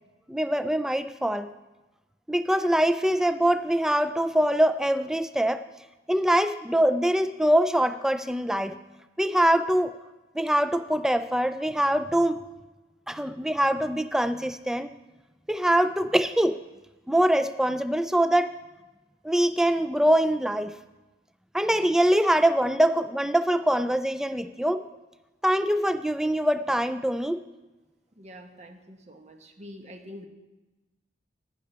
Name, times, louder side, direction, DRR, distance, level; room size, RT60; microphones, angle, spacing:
voice 1, 0.3-1.5 2.3-5.6 6.1-8.8 9.2-9.9 10.4-12.5 13.1-14.9 15.5-16.6 17.1-18.5 19.2-20.7 21.5-24.8 25.4-27.4, right 1 dB, 5° right, 11 dB, 0.3 m, -23 dB
voice 2, 28.2-30.3, equal, 40° right, 5 dB, 1.0 m, -45 dB
10.0 x 10.0 x 4.3 m, 1.1 s
head